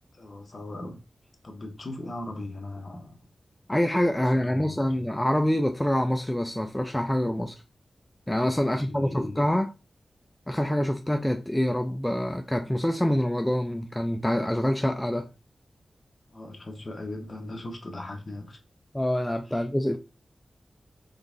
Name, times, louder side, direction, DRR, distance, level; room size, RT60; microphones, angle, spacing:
voice 1, 0.1-1.0 1.4-3.2 4.1-4.8 8.6-9.4 16.3-18.6 19.5-19.6 19.9-20.0, left 2 dB, 35° left, 1.1 m, -39 dB
voice 2, 3.7-7.6 8.3-9.7 10.5-15.3 18.9-20.0, left 1 dB, 5° left, 0.4 m, -26 dB
3.9 x 3.5 x 3.8 m
wide cardioid pair, 130°, 0 cm